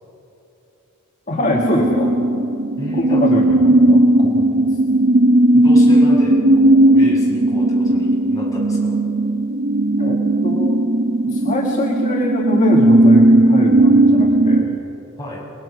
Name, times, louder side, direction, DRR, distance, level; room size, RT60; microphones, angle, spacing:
voice 1, 1.3-2.1 2.9-4.8 10.0-10.8 11.3-14.7, left 1 dB, 35° left, 0 dB, 1.7 m, -24 dB
sound 1, 1.4-14.6, right 1 dB, 55° right, 1.3 m, -15 dB
voice 2, 2.8-3.2 5.5-9.0 15.2-15.4, left 1 dB, 15° left, -5 dB, 6.5 m, -32 dB
30.0 x 20.5 x 6.3 m, 2.9 s
head